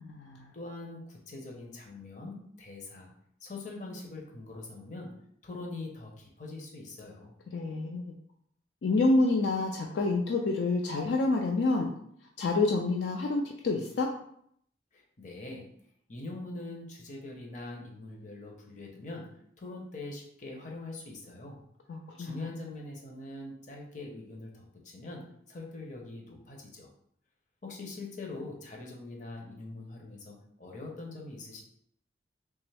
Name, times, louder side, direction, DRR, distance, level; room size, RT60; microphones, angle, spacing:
voice 1, 0.0-0.5 7.5-8.1 8.8-11.9 12.4-14.1 21.9-22.5, left 3 dB, 70° left, 1 dB, 0.4 m, -28 dB
voice 2, 0.5-3.1 3.4-5.1 5.4-7.3 14.9-15.7 16.1-19.3 19.6-21.6 22.2-26.9 27.6-31.6, left 2 dB, 40° left, 0 dB, 0.7 m, -43 dB
3.4 x 3.0 x 3.3 m, 0.69 s
head